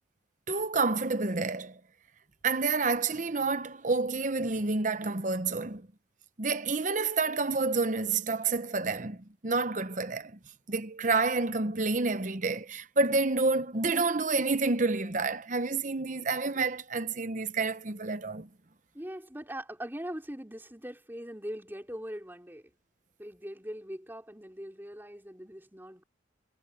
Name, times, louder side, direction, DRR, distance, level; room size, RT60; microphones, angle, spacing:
voice 1, 0.5-1.8 2.4-5.9 6.4-10.4 10.7-18.5, right 3 dB, 45° right, 0.9 m, -29 dB
voice 2, 18.9-22.7 23.2-26.0, equal, 10° right, 4.2 m, -41 dB
head